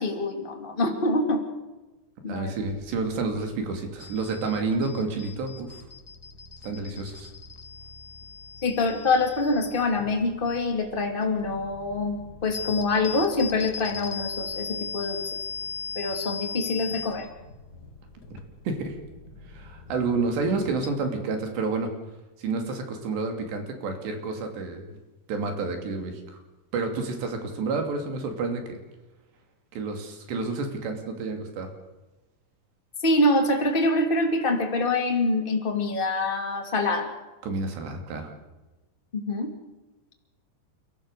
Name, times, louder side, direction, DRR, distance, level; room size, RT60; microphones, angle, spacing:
voice 1, 0.0-1.4 2.2-2.5 8.6-15.2 15.9-17.3 33.0-37.1 39.2-39.5, left 2 dB, 15° left, 3 dB, 1.8 m, -25 dB
voice 2, 2.3-5.8 6.6-7.3 18.7-19.0 19.5-21.9 22.4-25.0 25.3-26.2 26.7-28.8 29.7-31.7 37.4-38.3, right 3 dB, 80° right, 4 dB, 4.8 m, -29 dB
sound 1, 2.7-20.9, left 5 dB, 50° left, 1.1 m, -39 dB
29.5 x 14.0 x 6.8 m, 1.1 s
omnidirectional pair, 4.9 m